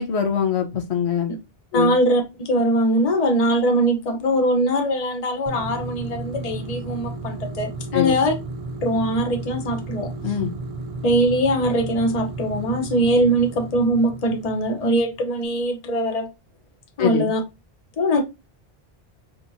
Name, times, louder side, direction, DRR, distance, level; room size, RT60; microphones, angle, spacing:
voice 1, 0.0-1.3 1.7-2.0 7.9-8.2 10.2-10.5 17.0-17.3, left 8 dB, 80° left, 1.1 m, -23 dB
voice 2, 1.7-8.3 8.8-10.1 11.0-16.3 17.0-17.4 18.0-18.2, right 1 dB, 40° left, 0.9 m, -21 dB
sound 1, 5.5-15.3, right 2 dB, 40° right, 0.5 m, -33 dB
5.5 x 3.0 x 2.6 m
omnidirectional pair, 1.1 m